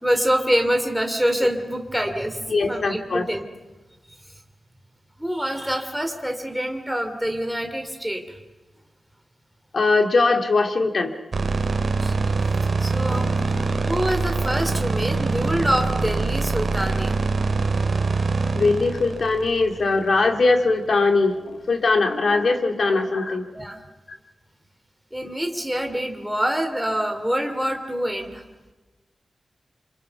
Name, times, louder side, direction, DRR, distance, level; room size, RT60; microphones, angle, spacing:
voice 1, 0.0-2.4 2.7-3.4 5.2-8.2 11.5-12.2 12.8-13.4 13.9-17.1 22.7-23.0 23.5-23.8 25.1-28.4, equal, ahead, 5 dB, 2.8 m, -26 dB
voice 2, 2.5-3.3 9.7-11.1 18.5-23.4 24.1-24.2, left 3 dB, 55° left, 5 dB, 2.2 m, -21 dB
sound 1, 11.3-20.5, right 3 dB, 50° right, 2.7 m, -24 dB
29.0 x 26.5 x 5.9 m, 1.2 s
wide cardioid pair, 155°, 0 cm